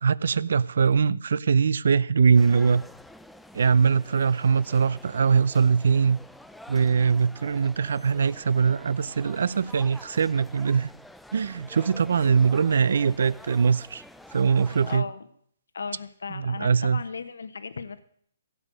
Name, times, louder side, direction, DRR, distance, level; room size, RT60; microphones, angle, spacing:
voice 1, 0.0-2.8 3.5-6.2 6.7-10.9 11.3-14.0 14.3-15.1 16.4-17.0, right 6 dB, 70° right, 0.6 m, -22 dB
sound 1, 2.3-15.0, left 1 dB, ahead, 0.6 m, -48 dB
voice 2, 12.1-12.6 14.7-15.3 15.7-18.0, left 5 dB, 80° left, 1.1 m, -37 dB
16.0 x 8.4 x 6.3 m
hypercardioid pair, 145°, 0 cm